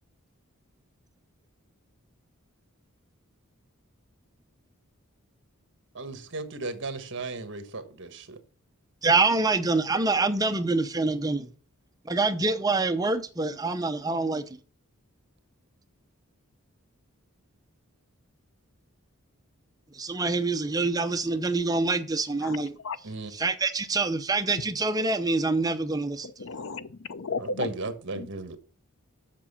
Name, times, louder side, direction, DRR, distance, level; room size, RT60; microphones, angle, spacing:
voice 1, 5.9-8.4 23.0-23.3 27.4-28.6, right 3 dB, 55° right, 1.4 m, -35 dB
voice 2, 9.0-11.5 12.1-14.4 19.9-22.8 23.3-26.3, right 3 dB, 15° right, 0.7 m, -26 dB
voice 3, 26.2-27.7 28.2-28.3, left 4 dB, 60° left, 0.6 m, -34 dB
7.4 x 6.5 x 7.2 m
head